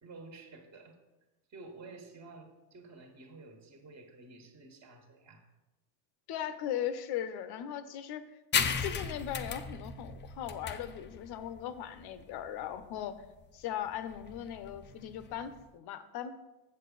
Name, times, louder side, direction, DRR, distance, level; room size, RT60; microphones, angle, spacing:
voice 1, 0.0-1.0 1.5-5.5, right 3 dB, 35° right, 3 dB, 1.6 m, -51 dB
voice 2, 6.3-8.2 8.6-13.2 13.5-16.3, left 10 dB, 55° left, 11 dB, 0.8 m, -38 dB
sound 1, 8.5-15.6, left 6 dB, 25° left, 0.5 m, -36 dB
7.6 x 7.2 x 3.9 m, 1.0 s
supercardioid pair, 100°, 48 cm